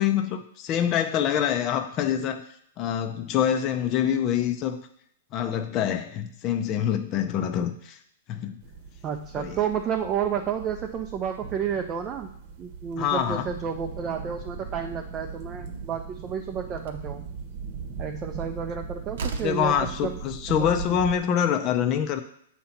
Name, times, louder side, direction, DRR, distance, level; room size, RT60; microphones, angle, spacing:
voice 1, 0.0-2.4 2.8-4.8 5.3-8.0 8.3-8.6 9.4-9.6 13.0-13.5 19.4-22.2, left 9 dB, 35° left, 6 dB, 0.5 m, -25 dB
sound 1, 8.6-21.2, right 5 dB, 45° right, 1.0 m, -39 dB
voice 2, 9.0-12.3 12.6-17.3 18.0-20.2 20.6-21.0, right 8 dB, 25° right, 3 dB, 0.5 m, -31 dB
Slam, 16.8-17.1 18.6-18.7 19.1-19.7, right 4 dB, 70° right, 0.8 m, -35 dB
7.7 x 2.8 x 5.7 m, 0.68 s
hypercardioid pair, 140°, 0 cm